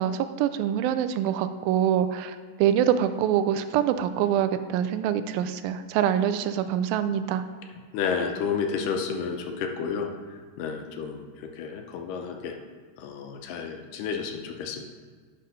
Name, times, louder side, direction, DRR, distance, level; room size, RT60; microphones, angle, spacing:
voice 1, 0.0-7.4, right 10 dB, 90° right, 10 dB, 2.3 m, -25 dB
voice 2, 7.9-10.1 10.6-11.3 11.6-12.6 13.0-14.8, left 6 dB, 80° left, 4 dB, 2.2 m, -31 dB
10.0 x 3.8 x 5.5 m, 1.5 s
omnidirectional pair, 4.0 m